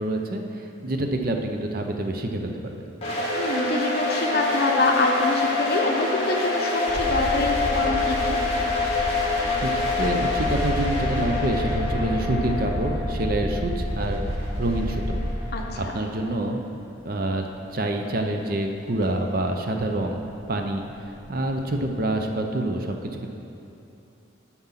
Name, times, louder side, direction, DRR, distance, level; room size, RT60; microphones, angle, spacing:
voice 1, 0.0-2.7 9.6-14.3 14.6-15.2 15.9-16.6 17.0-17.4 17.7-20.2 20.5-20.8 21.3-23.3, right 1 dB, 45° right, 3 dB, 0.6 m, -27 dB
sound 1, 3.0-15.9, left 3 dB, 30° left, 1.8 m, -27 dB
voice 2, 3.4-8.4 15.5-15.9, left 2 dB, 50° left, 1 dB, 0.8 m, -25 dB
sound 2, 6.9-15.6 16.8-16.9 19.0-19.1 19.4-21.9, equal, 70° right, 1.3 m, -30 dB
7.6 x 6.0 x 5.6 m, 2.8 s
head